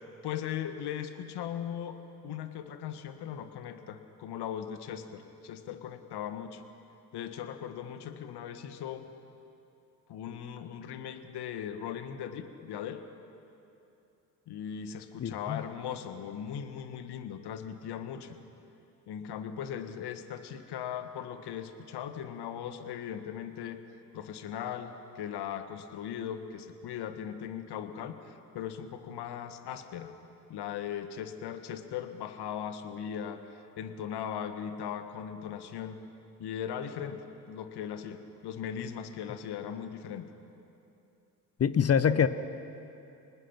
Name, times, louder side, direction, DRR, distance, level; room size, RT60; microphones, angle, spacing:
voice 1, 0.2-6.6 7.1-9.1 10.1-13.0 14.5-18.4 19.1-23.8 24.1-30.1 30.5-36.0 36.4-37.2 37.5-40.3, left 9 dB, 55° left, 9 dB, 1.6 m, -39 dB
voice 2, 15.2-15.6 41.6-42.3, left 7 dB, 30° left, 14 dB, 0.9 m, -25 dB
24.5 x 19.5 x 6.0 m, 2.8 s
hypercardioid pair, 55°, 47 cm